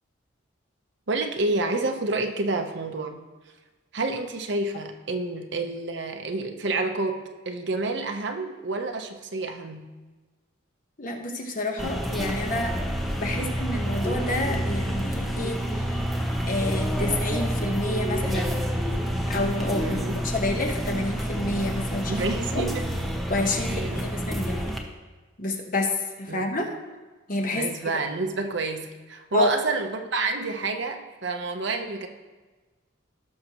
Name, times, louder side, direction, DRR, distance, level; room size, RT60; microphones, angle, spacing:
voice 1, 1.1-3.2 3.9-9.9 13.3-13.5 19.8-20.2 22.1-22.9 23.7-24.0 26.3-26.4 27.5-32.1, right 3 dB, 60° right, 5 dB, 0.9 m, -29 dB
voice 2, 11.0-12.8 13.2-15.9 16.4-18.6 19.3-22.2 22.5-22.7 23.3-24.7 25.4-26.7 27.3-27.7 29.3-29.5, left 2 dB, 40° left, 2 dB, 1.2 m, -29 dB
sound 1, 11.8-24.8, equal, ahead, 0.8 m, -28 dB
17.0 x 6.5 x 3.0 m, 1.2 s
head